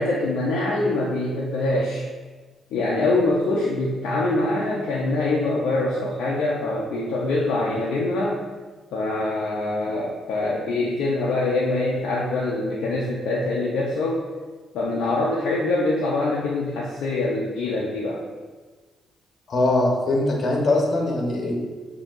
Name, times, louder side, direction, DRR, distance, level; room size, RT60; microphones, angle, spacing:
voice 1, 0.0-2.0 2.7-8.4 8.9-14.2 14.7-18.2, left 2 dB, 80° left, -4 dB, 0.5 m, -24 dB
voice 2, 19.5-21.5, left 2 dB, 55° left, -1 dB, 1.1 m, -21 dB
7.2 x 2.8 x 2.5 m, 1.4 s
cardioid pair, 70°, 0 cm